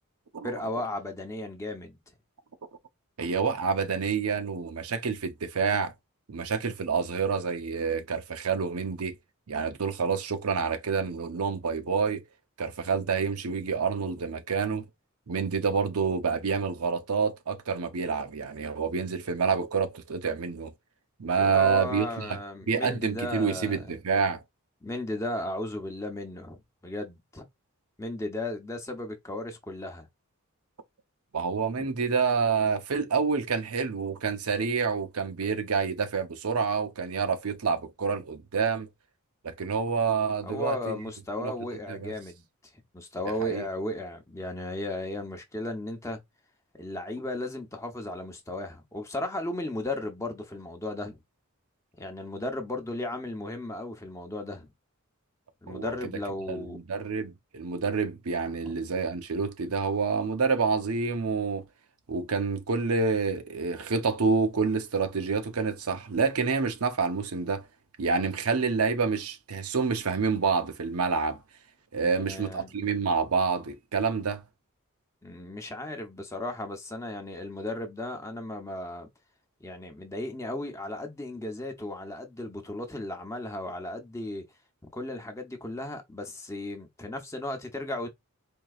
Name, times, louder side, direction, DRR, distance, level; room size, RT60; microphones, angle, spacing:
voice 1, 0.4-2.0 21.4-23.9 24.8-27.4 28.0-30.1 31.8-31.9 40.4-42.4 42.9-46.2 46.8-51.2 51.9-54.7 55.6-56.8 58.6-58.8 72.0-72.7 75.2-79.1 79.6-84.4 84.9-88.1, left 1 dB, 15° left, 0.8 m, -35 dB
voice 2, 3.2-5.9 6.3-9.2 9.5-12.2 12.6-14.8 15.3-20.7 21.2-22.4 22.7-24.4 31.3-38.9 39.4-40.9 41.4-41.5 41.9-42.1 43.4-43.6 55.7-55.9 56.5-61.6 62.1-67.6 68.0-71.4 71.9-74.4, right 5 dB, 80° right, 0.7 m, -28 dB
4.6 x 2.8 x 2.4 m
head